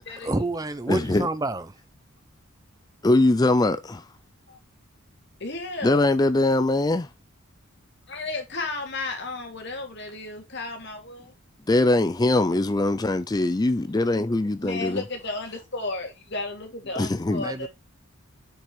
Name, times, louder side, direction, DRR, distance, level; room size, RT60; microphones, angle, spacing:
voice 1, 0.2-1.7 17.4-17.7, right 2 dB, 15° right, 0.7 m, -28 dB
voice 2, 0.9-1.3 3.0-4.0 5.8-7.1 11.7-15.0 17.0-17.4, left 2 dB, 15° left, 0.4 m, -22 dB
voice 3, 5.4-6.0 8.1-11.3 14.6-17.7, left 3 dB, 50° left, 2.7 m, -33 dB
7.6 x 6.3 x 3.2 m
head